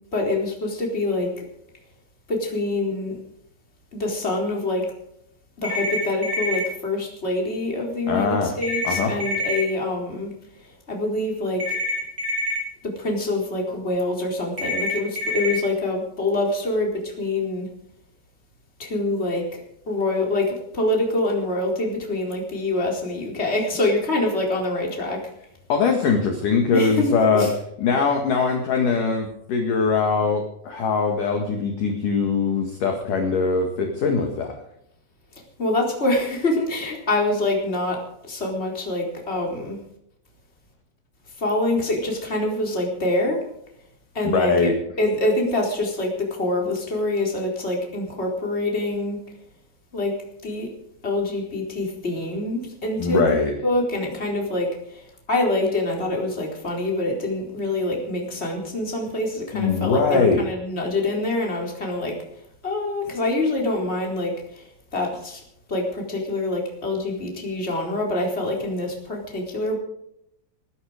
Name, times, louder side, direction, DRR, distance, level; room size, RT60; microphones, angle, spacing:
voice 1, 0.1-1.3 2.3-3.2 3.9-4.8 5.6-10.3 10.6-11.8 12.8-17.7 18.8-25.2 26.7-27.5 35.6-38.0 38.3-39.8 41.4-43.4 44.1-49.2 49.9-50.1 50.4-50.7 51.0-53.4 53.6-62.1 62.6-64.6 64.9-65.4 65.7-69.8, left 2 dB, 15° left, 0 dB, 3.7 m, -25 dB
sound 1, 5.6-6.6 8.6-9.6 11.6-12.6 14.6-15.6, left 1 dB, 20° right, 4.3 m, -26 dB
voice 2, 8.1-8.5 8.8-9.1 25.7-27.5 27.8-34.5 44.3-44.7 53.0-53.5 59.5-60.4, left 4 dB, 55° left, 3 dB, 2.6 m, -21 dB
21.5 x 11.5 x 5.1 m, 0.75 s
omnidirectional pair, 5.9 m